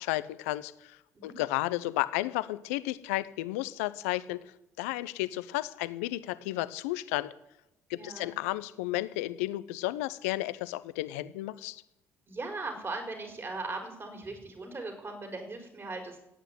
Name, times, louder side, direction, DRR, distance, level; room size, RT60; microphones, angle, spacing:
voice 1, 0.0-4.4 4.8-7.3 7.9-11.8, left 17 dB, 80° left, 15 dB, 0.8 m, -33 dB
voice 2, 7.9-8.3 12.3-16.2, right 3 dB, 35° right, 4 dB, 5.2 m, -39 dB
15.5 x 9.1 x 9.2 m, 0.87 s
hypercardioid pair, 55°, 8 cm